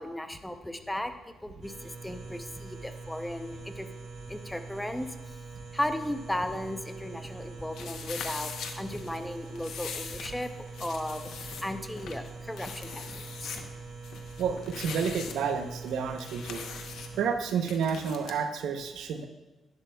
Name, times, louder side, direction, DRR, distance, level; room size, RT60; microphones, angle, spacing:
voice 1, 0.0-3.9 4.3-5.4 5.7-10.5 10.8-13.7, left 1 dB, 5° left, 8 dB, 0.6 m, -36 dB
sound 1, 1.6-17.2, right 4 dB, 45° right, 3.1 m, -44 dB
sound 2, 7.7-18.4, left 6 dB, 80° left, 0.9 m, -42 dB
voice 2, 14.4-16.6 17.2-19.3, right 6 dB, 90° right, 6 dB, 0.8 m, -30 dB
11.0 x 10.5 x 2.3 m, 1.1 s
cardioid pair, 105°, 0 cm